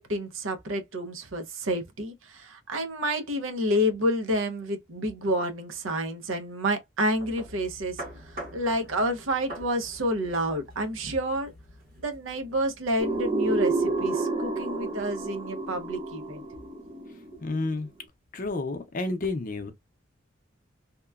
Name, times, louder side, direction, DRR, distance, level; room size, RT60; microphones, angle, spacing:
voice 1, 0.0-11.5 12.0-16.4, equal, 80° right, 0.7 m, -29 dB
sound 1, 7.1-14.0, right 1 dB, 50° right, 1.1 m, -45 dB
sound 2, 13.0-17.7, right 3 dB, 30° right, 0.5 m, -30 dB
voice 2, 17.4-17.9 18.3-19.7, left 2 dB, 40° left, 0.6 m, -30 dB
2.9 x 2.1 x 2.3 m
head